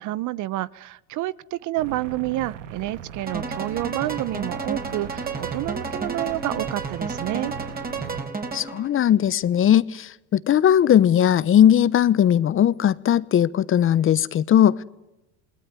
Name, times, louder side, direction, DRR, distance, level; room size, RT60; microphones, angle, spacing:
voice 1, 0.0-7.5, right 16 dB, 55° right, 19 dB, 1.0 m, -29 dB
sound 1, 1.8-8.2, right 8 dB, 85° right, 1.7 m, -39 dB
sound 2, 3.3-8.9, right 4 dB, 25° right, 4.6 m, -31 dB
voice 2, 8.5-14.8, left 10 dB, 35° left, 18 dB, 1.0 m, -18 dB
28.0 x 20.5 x 9.7 m, 0.98 s
supercardioid pair, 95°, 37 cm